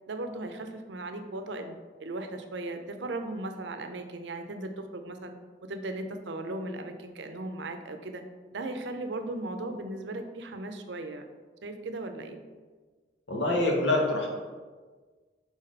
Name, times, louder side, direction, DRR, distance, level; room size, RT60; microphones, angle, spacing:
voice 1, 0.1-1.7 2.0-5.3 5.6-8.2 8.5-11.2 11.6-12.4, right 2 dB, 80° right, 7 dB, 0.6 m, -37 dB
voice 2, 13.3-14.3, left 2 dB, 85° left, -1 dB, 1.4 m, -25 dB
4.8 x 4.1 x 5.2 m, 1.4 s
head